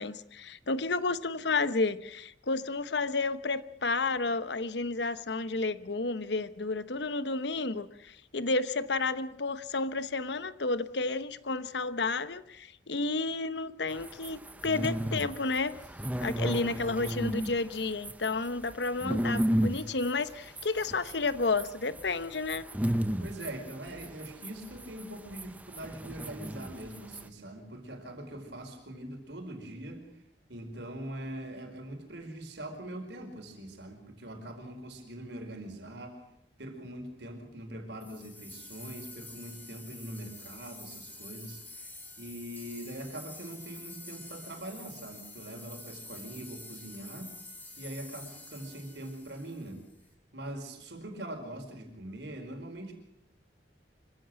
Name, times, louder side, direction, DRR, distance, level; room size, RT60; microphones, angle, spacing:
voice 1, 0.0-15.7 16.2-22.7, left 3 dB, 75° left, 14 dB, 1.0 m, -31 dB
sound 1, 13.9-27.3, equal, 10° right, 0.8 m, -34 dB
voice 2, 23.2-30.2 30.5-36.2 36.6-47.4 47.8-49.8 50.3-52.9, right 1 dB, 75° right, 4 dB, 4.8 m, -42 dB
sound 2, 38.0-50.0, left 2 dB, 10° left, 3.1 m, -48 dB
26.0 x 15.5 x 7.7 m, 0.78 s
head